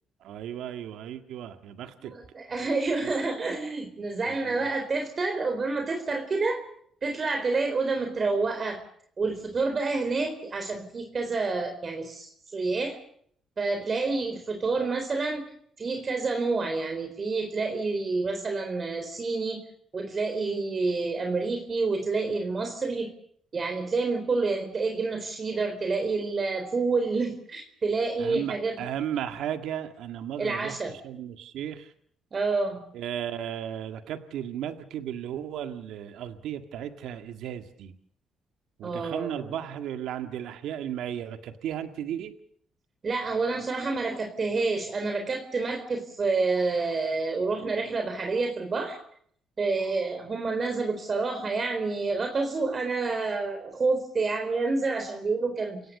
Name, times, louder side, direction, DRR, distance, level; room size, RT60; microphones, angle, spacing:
voice 1, 0.2-2.1 3.0-3.1 4.3-4.7 28.2-30.8 31.0-31.9 32.9-37.9 38.8-42.3, right 10 dB, 85° right, 8 dB, 1.9 m, -35 dB
voice 2, 2.0-6.6 7.0-8.8 9.2-13.0 13.6-15.4 15.8-19.6 19.9-23.1 23.5-28.8 30.4-31.0 32.3-32.8 38.8-39.5 43.0-49.0 49.6-55.8, right 3 dB, 40° right, 5 dB, 4.2 m, -28 dB
30.0 x 17.0 x 6.7 m, 0.63 s
cardioid pair, 90°, 0 cm